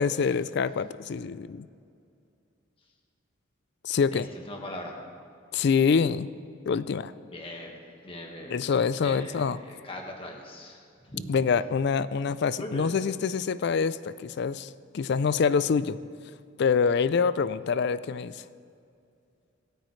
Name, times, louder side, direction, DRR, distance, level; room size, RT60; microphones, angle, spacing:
voice 1, 0.0-1.7 3.8-4.3 5.5-6.3 6.7-7.1 8.5-9.6 11.3-16.0 16.6-18.3, left 5 dB, 60° left, 16 dB, 0.4 m, -25 dB
voice 2, 4.1-5.0 7.3-7.7 8.0-8.7 9.0-11.2 12.6-12.9, left 1 dB, 25° left, 0 dB, 1.6 m, -40 dB
26.5 x 9.1 x 3.2 m, 2.4 s
head